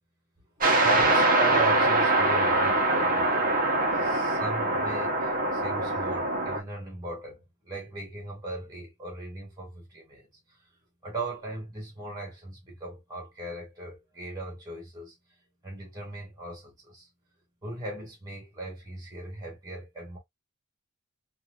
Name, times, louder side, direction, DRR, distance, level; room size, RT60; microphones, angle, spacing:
voice 1, 0.6-3.5 3.9-10.6 11.0-15.1 15.6-17.1 17.6-20.2, right 2 dB, 20° right, 1.8 m, -38 dB
sound 1, 0.6-6.6, right 2 dB, 40° right, 0.8 m, -23 dB
4.6 x 2.4 x 2.3 m
head